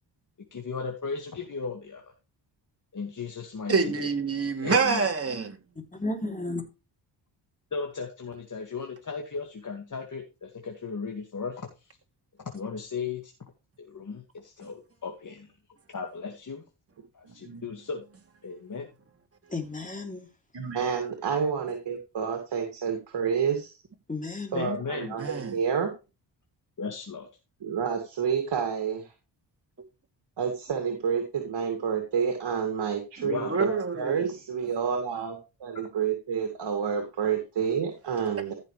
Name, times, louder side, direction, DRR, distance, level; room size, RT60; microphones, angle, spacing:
voice 1, 0.5-2.0 2.9-4.1 4.6-5.0 7.7-11.9 12.5-13.3 13.8-15.5 15.9-16.6 17.1-18.1 18.4-18.9 24.5-25.1 26.8-27.3 33.2-33.6 35.7-35.9, left 5 dB, 40° left, 2.1 m, -36 dB
voice 2, 3.7-5.6 25.2-25.5 33.2-34.3, right 4 dB, 30° right, 2.9 m, -27 dB
voice 3, 5.9-6.6 19.5-20.3 24.1-24.7, left 2 dB, 15° left, 3.2 m, -33 dB
voice 4, 17.2-17.6 20.5-23.7 24.5-25.9 27.6-29.1 30.4-38.5, right 7 dB, 60° right, 2.5 m, -29 dB
15.0 x 6.4 x 3.3 m
cardioid pair, 85°, 45 cm